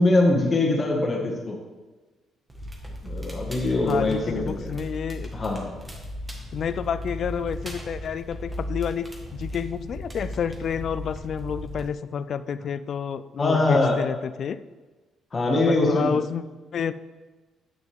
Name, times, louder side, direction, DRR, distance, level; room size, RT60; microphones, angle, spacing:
voice 1, 0.0-1.6 3.0-4.7 5.3-5.7 13.4-14.0 15.3-16.2, left 2 dB, 35° left, 0 dB, 1.9 m, -22 dB
Crackle, 2.5-11.9, equal, 20° right, 1.7 m, -36 dB
voice 2, 3.9-5.3 6.5-14.6 15.5-16.4 16.7-16.9, left 7 dB, 55° left, 14 dB, 0.4 m, -30 dB
9.5 x 6.0 x 3.6 m, 1.2 s
cardioid pair, 90°, 0 cm